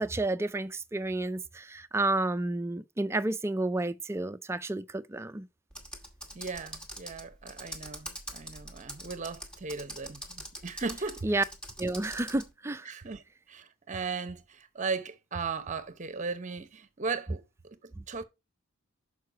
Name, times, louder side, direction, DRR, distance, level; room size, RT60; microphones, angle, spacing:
voice 1, 0.0-5.5 11.2-11.4 11.8-12.9 18.0-18.1, right 2 dB, 10° right, 0.3 m, -31 dB
Computer keyboard, 5.7-12.5, right 1 dB, 5° left, 1.3 m, -43 dB
voice 2, 6.3-11.3 12.8-13.2 13.5-17.4 17.8-18.2, right 4 dB, 35° right, 0.8 m, -37 dB
6.5 x 4.7 x 4.5 m
head